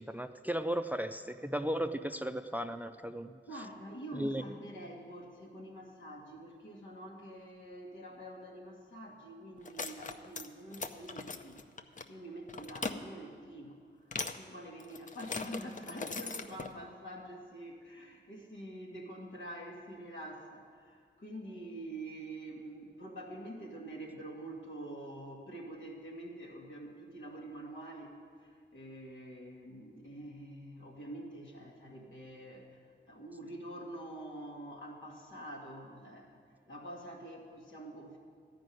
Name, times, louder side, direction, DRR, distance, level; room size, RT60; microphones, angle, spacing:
voice 1, 0.0-3.4 4.1-4.5, equal, 10° right, 9 dB, 0.4 m, -35 dB
voice 2, 3.5-11.6 12.1-14.0 14.3-32.8 33.1-36.4 36.7-38.2, right 1 dB, 85° left, -1 dB, 1.9 m, -46 dB
sound 1, 9.6-10.5 10.7-12.0 12.5-13.0 14.1-14.4 14.8-16.7, left 4 dB, 40° left, 0.6 m, -39 dB
13.5 x 5.2 x 9.2 m, 2.1 s
wide cardioid pair, 100°, 19 cm